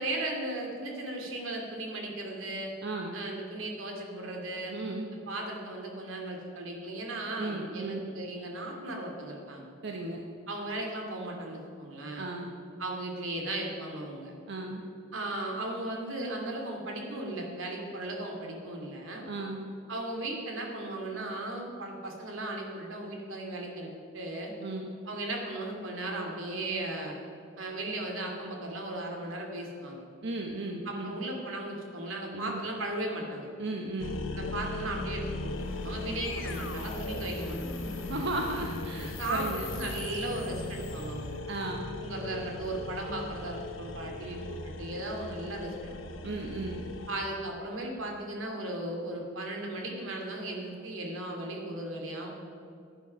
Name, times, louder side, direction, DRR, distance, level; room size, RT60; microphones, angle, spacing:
voice 1, 0.0-2.7 3.1-4.8 5.3-9.7 10.5-12.3 12.8-14.3 15.1-19.3 19.9-24.5 25.0-27.1 27.6-30.0 30.9-33.5 34.3-37.6 39.2-41.4 42.0-45.9 47.1-52.3, right 1 dB, 85° right, 1 dB, 2.5 m, -36 dB
voice 2, 2.8-3.2 4.7-5.1 7.4-8.0 9.8-10.2 12.2-12.6 14.5-14.8 19.3-19.7 24.6-24.9 30.2-31.2 32.3-32.6 33.6-34.2 38.1-39.7 41.5-41.9 46.2-46.8, right 2 dB, 60° right, 1 dB, 1.0 m, -35 dB
sound 1, 34.0-47.1, left 2 dB, 85° left, 1.1 m, -39 dB
sound 2, 35.2-41.5, left 2 dB, 70° left, 2.2 m, -42 dB
15.5 x 9.2 x 5.7 m, 2.5 s
head